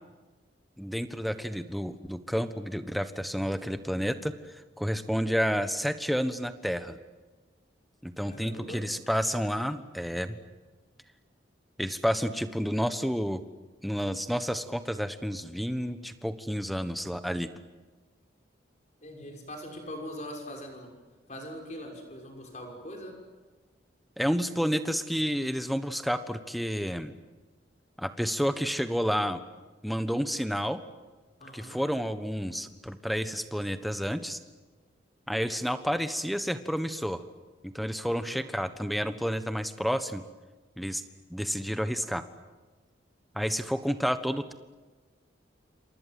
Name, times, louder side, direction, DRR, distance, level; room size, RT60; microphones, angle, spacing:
voice 1, 0.8-7.0 8.0-10.4 11.8-13.4 13.8-17.5 24.2-27.1 28.0-29.4 29.8-30.8 31.5-34.4 35.3-37.2 37.6-40.2 40.8-41.0 41.3-42.2 43.3-44.5, equal, ahead, 10 dB, 1.2 m, -30 dB
voice 2, 8.3-8.8 19.0-20.9 21.3-23.2 31.4-31.8 38.0-38.5, equal, 35° left, 2 dB, 6.2 m, -42 dB
28.5 x 26.0 x 7.7 m, 1.3 s
head